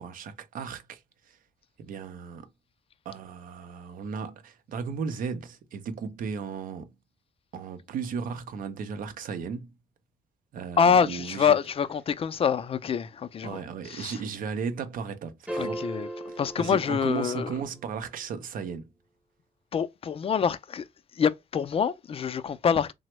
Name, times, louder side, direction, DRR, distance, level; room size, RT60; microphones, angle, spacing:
voice 1, 0.0-1.4 1.8-2.5 3.1-6.9 7.5-9.7 10.5-11.6 13.4-15.8 16.3-18.9, right 6 dB, 70° right, 0.6 m, -35 dB
voice 2, 10.8-13.6 13.9-14.1 15.6-16.1 16.4-17.5 19.7-20.8 21.2-22.9, left 7 dB, 40° left, 0.4 m, -25 dB
sound 1, 15.5-17.7, right 1 dB, 10° right, 0.7 m, -37 dB
3.3 x 2.0 x 2.9 m
cardioid pair, 70°, 15 cm